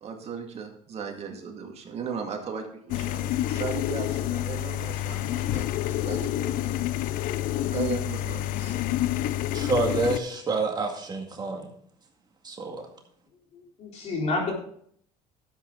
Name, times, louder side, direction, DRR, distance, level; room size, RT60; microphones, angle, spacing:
voice 1, 0.0-6.9 7.7-8.8, right 6 dB, 45° right, 2 dB, 2.1 m, -36 dB
sound 1, 2.9-10.2, left 13 dB, 70° left, 0.5 m, -28 dB
voice 2, 9.5-11.7 12.4-12.8, right 3 dB, 30° right, 2 dB, 2.0 m, -28 dB
voice 3, 13.5-14.5, left 3 dB, 50° left, 0 dB, 3.8 m, -29 dB
12.5 x 7.8 x 3.8 m, 0.63 s
cardioid pair, 115°, 15 cm